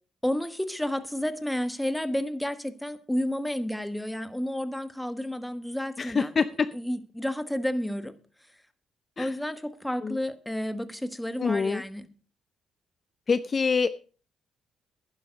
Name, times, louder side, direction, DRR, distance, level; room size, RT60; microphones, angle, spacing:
voice 1, 0.2-6.3 6.7-8.1 9.2-12.1, left 1 dB, 5° left, 11 dB, 1.3 m, -31 dB
voice 2, 6.0-6.7 9.2-9.3 10.0-10.2 11.4-11.8 13.3-13.9, left 5 dB, 35° left, 14 dB, 0.6 m, -25 dB
11.5 x 11.0 x 5.2 m, 0.38 s
cardioid pair, 90°, 0 cm